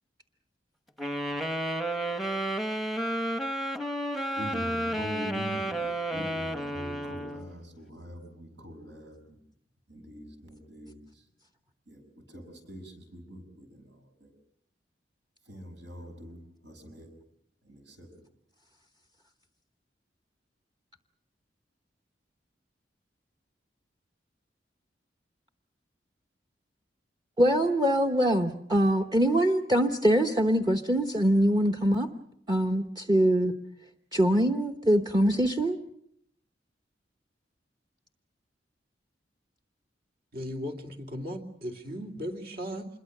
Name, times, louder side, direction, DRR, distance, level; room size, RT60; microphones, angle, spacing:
sound 1, 1.0-7.5, right 1 dB, ahead, 0.9 m, -31 dB
voice 1, 4.4-9.4 9.9-11.3 11.9-14.3 15.4-17.1 17.6-18.2, equal, 80° right, 5 dB, 6.3 m, -43 dB
voice 2, 27.4-32.1 32.5-33.5 34.1-35.8, equal, 25° right, 6 dB, 1.0 m, -23 dB
voice 3, 40.3-42.9, equal, 60° right, 4 dB, 2.8 m, -37 dB
26.5 x 22.0 x 6.6 m, 0.71 s
head